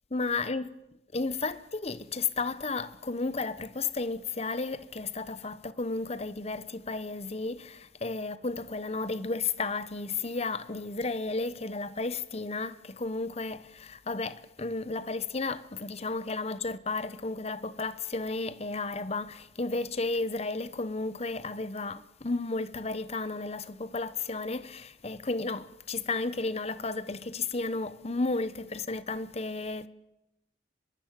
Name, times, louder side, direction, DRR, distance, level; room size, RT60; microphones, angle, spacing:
voice 1, 0.1-0.7 1.1-29.9, left 3 dB, 35° left, 1.0 m, -33 dB
23.0 x 22.0 x 9.1 m
head